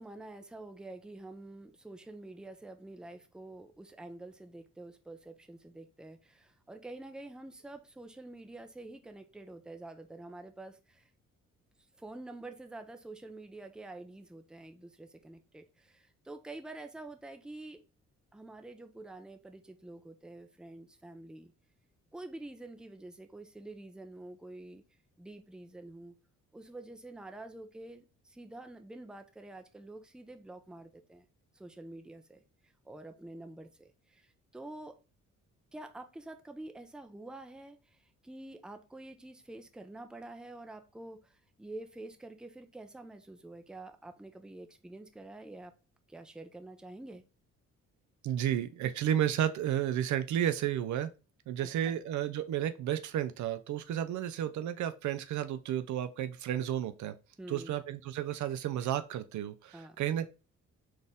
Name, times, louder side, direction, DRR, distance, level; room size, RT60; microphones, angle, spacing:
voice 1, 0.0-11.1 12.0-17.8 18.3-21.5 22.1-24.8 25.2-26.1 26.5-31.3 31.5-35.0 35.7-38.0 38.2-45.7 46.1-47.2 51.6-52.0 57.4-57.8 59.7-60.0, right 2 dB, 5° right, 0.5 m, -47 dB
voice 2, 48.2-51.1 51.5-57.1 57.5-60.3, right 10 dB, 70° right, 0.5 m, -32 dB
4.1 x 2.6 x 3.5 m
cardioid pair, 90°, 30 cm